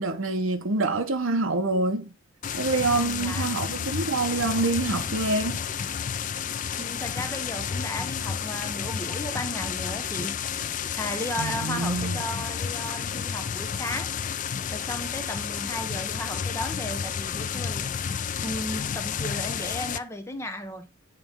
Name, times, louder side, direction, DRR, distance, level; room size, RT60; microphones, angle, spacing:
voice 1, 0.0-2.1 2.5-5.6 11.4-12.2, right 3 dB, 65° right, 0.9 m, -26 dB
sound 1, 2.4-20.0, left 7 dB, 35° left, 0.3 m, -31 dB
voice 2, 2.9-3.5 6.8-10.4 10.6-14.1 14.5-20.9, left 1 dB, 10° left, 0.9 m, -35 dB
9.1 x 3.1 x 5.2 m
head